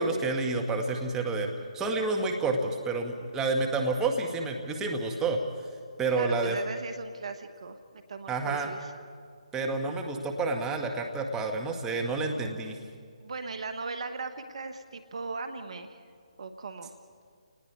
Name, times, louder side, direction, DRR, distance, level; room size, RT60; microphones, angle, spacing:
voice 1, 0.0-5.4 6.0-6.6 8.3-8.7 9.5-12.8, right 3 dB, 10° right, 2 dB, 1.7 m, -29 dB
voice 2, 6.1-8.9 13.2-16.0 16.4-16.9, right 4 dB, 55° right, 9 dB, 1.4 m, -38 dB
29.0 x 19.5 x 4.7 m, 2.1 s
figure-of-eight pair, 145°, 4 cm